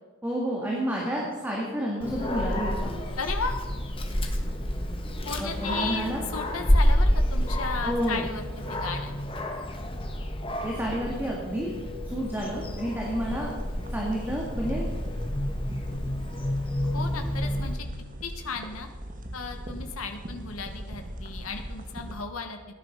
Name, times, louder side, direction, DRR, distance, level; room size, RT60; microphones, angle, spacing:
voice 1, 0.2-2.9 5.4-6.2 7.8-8.2 10.6-11.7 12.0-13.5 13.8-14.9, equal, 10° right, -3 dB, 2.1 m, -30 dB
Dog, 2.0-17.7, equal, 25° left, 1.4 m, -29 dB
voice 2, 3.2-3.6 5.2-9.2 16.9-17.9 18.2-18.9 19.3-22.6, left 5 dB, 85° left, 5 dB, 1.3 m, -35 dB
sound 1, 12.5-22.2, equal, 40° right, 1.5 m, -40 dB
16.0 x 10.5 x 5.4 m, 1.4 s
head